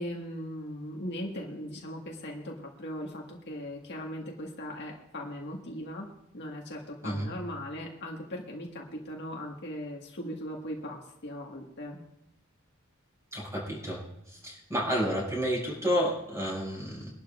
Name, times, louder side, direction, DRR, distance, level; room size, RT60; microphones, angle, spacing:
voice 1, 0.0-6.1 6.3-12.0, equal, 55° left, -1 dB, 1.7 m, -39 dB
voice 2, 13.3-14.0 14.4-17.1, equal, 15° right, -4 dB, 6.2 m, -30 dB
24.0 x 12.0 x 2.5 m, 0.79 s
head